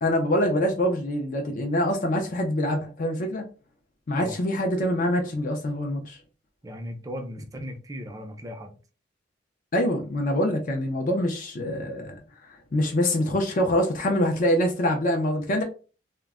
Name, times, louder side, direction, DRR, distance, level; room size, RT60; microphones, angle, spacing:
voice 1, 0.0-3.4 4.1-6.2 9.7-15.6, left 1 dB, 45° left, 0.4 m, -25 dB
voice 2, 6.6-8.8, equal, 20° right, 0.4 m, -37 dB
2.2 x 2.0 x 3.5 m
head